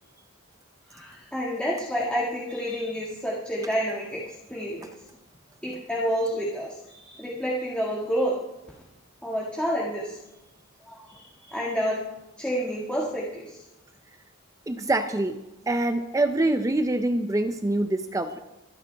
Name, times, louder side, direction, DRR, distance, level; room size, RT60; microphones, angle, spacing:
voice 1, 0.9-4.2 4.5-4.9 5.6-8.4 9.2-10.2 10.9-12.0 12.4-13.6, equal, 5° left, -5 dB, 1.8 m, -29 dB
voice 2, 14.7-15.4 15.7-18.4, right 2 dB, 15° right, 8 dB, 0.5 m, -25 dB
24.0 x 9.9 x 3.4 m, 0.94 s
head